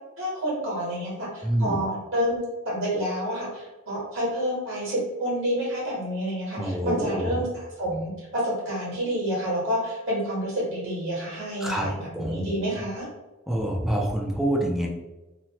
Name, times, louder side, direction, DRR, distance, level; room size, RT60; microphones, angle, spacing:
voice 1, 0.2-13.1, equal, 65° right, -6 dB, 1.3 m, -29 dB
voice 2, 1.4-1.8 6.6-7.5 11.6-11.9 12.1-12.8 13.5-14.9, right 1 dB, ahead, 0 dB, 0.3 m, -27 dB
2.8 x 2.1 x 2.8 m, 1.1 s
head